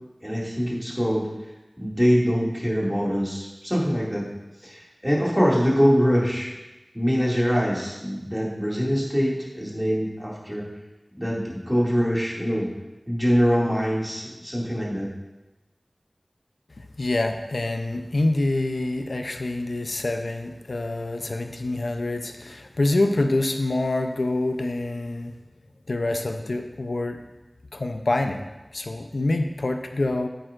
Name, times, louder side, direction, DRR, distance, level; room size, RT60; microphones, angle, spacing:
voice 1, 0.2-1.3 1.8-4.2 4.6-6.5 6.9-10.6 11.2-12.7 13.1-15.1, equal, 5° right, -5 dB, 2.3 m, -23 dB
voice 2, 17.0-25.4 25.9-27.2 27.7-28.4 28.7-30.3, left 2 dB, 90° left, 5 dB, 0.5 m, -26 dB
9.0 x 8.9 x 2.5 m, 1.1 s
wide cardioid pair, 55°, 0 cm